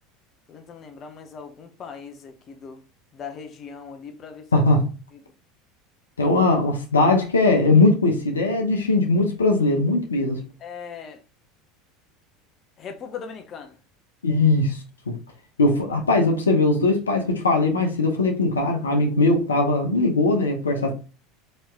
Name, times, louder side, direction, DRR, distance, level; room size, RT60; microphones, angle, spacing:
voice 1, 0.5-2.8 3.1-4.5 5.1-5.2 10.6-11.2 12.8-13.8, left 6 dB, 40° left, 0.6 m, -39 dB
voice 2, 4.5-4.9 6.2-10.4 14.2-14.8 15.1-15.2 15.6-20.9, left 2 dB, 90° left, 0.7 m, -20 dB
4.2 x 2.9 x 2.3 m
hypercardioid pair, 80°, 0 cm